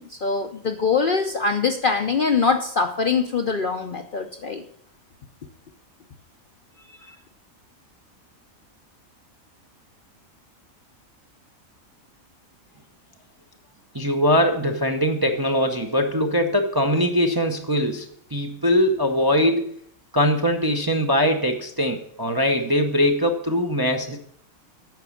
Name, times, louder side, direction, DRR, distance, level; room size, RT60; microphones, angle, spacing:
voice 1, 0.0-4.6 7.0-7.1, left 5 dB, 50° left, 6 dB, 0.6 m, -23 dB
voice 2, 13.9-19.7 20.1-24.2, equal, 25° right, 3 dB, 0.6 m, -21 dB
9.1 x 6.0 x 7.0 m, 0.65 s
omnidirectional pair, 1.5 m